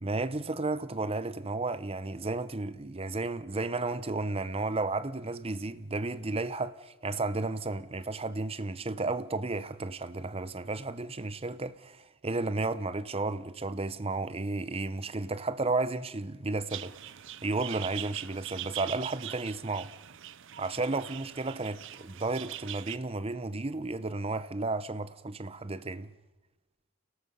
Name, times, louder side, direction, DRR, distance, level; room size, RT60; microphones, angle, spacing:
voice 1, 0.0-16.9 17.4-19.9 20.6-26.1, right 3 dB, 25° right, 0.8 m, -33 dB
sound 1, 16.7-23.0, right 12 dB, 55° right, 0.7 m, -42 dB
30.0 x 18.0 x 5.5 m
head